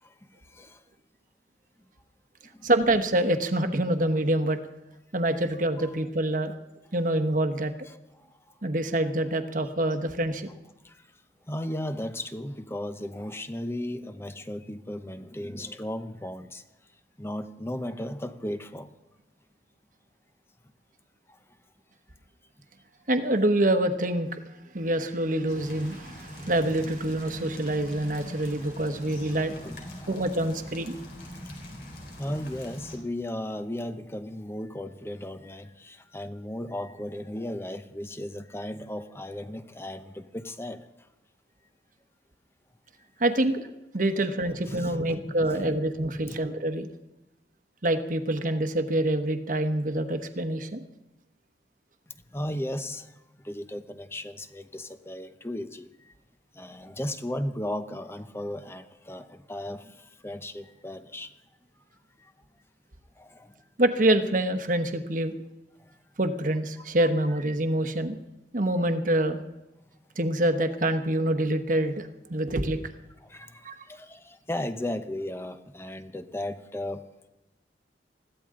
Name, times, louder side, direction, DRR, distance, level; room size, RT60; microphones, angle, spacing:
voice 1, 0.0-0.8 2.5-2.7 5.8-5.9 7.8-8.6 10.8-11.1 11.5-16.6 17.2-18.9 21.3-21.4 29.6-30.2 31.4-31.5 32.2-40.9 44.6-45.8 46.2-46.4 52.3-56.1 56.5-61.3 62.2-62.3 63.2-63.6 65.8-66.0 73.2-77.3, left 1 dB, 15° left, 10 dB, 0.8 m, -36 dB
voice 2, 2.6-4.6 5.1-6.5 6.9-7.7 8.6-10.5 23.1-24.4 24.7-29.5 30.1-31.0 43.2-43.7 43.9-46.9 47.8-50.8 63.8-65.3 66.2-68.2 68.5-69.4 70.2-72.8 73.6-73.8, right 1 dB, 45° right, 8 dB, 1.1 m, -26 dB
sound 1, 25.5-33.0, left 1 dB, 60° left, 3.9 m, -43 dB
20.5 x 15.0 x 3.8 m, 0.99 s
head